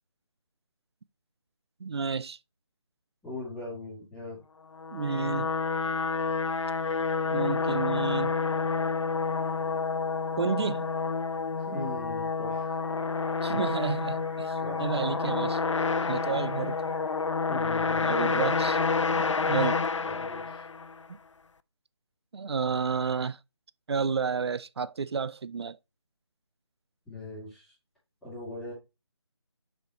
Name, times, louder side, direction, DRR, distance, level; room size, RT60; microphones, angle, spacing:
voice 1, 1.8-2.4 4.9-5.5 7.3-8.4 10.4-10.9 13.4-15.6 16.1-16.8 18.0-18.8 19.5-19.8 21.1-21.2 22.3-23.4 23.9-25.8, right 5 dB, 60° right, 0.4 m, -30 dB
voice 2, 3.2-4.4 11.6-12.7 14.6-14.8 17.5-18.3 19.1-19.3 20.0-20.6 27.1-27.7 28.2-28.7, left 2 dB, ahead, 2.4 m, -40 dB
sound 1, 4.7-21.0, left 4 dB, 90° left, 0.5 m, -29 dB
sound 2, 11.9-17.8, equal, 90° right, 4.5 m, -56 dB
6.9 x 5.2 x 2.9 m
figure-of-eight pair, 160°, 15 cm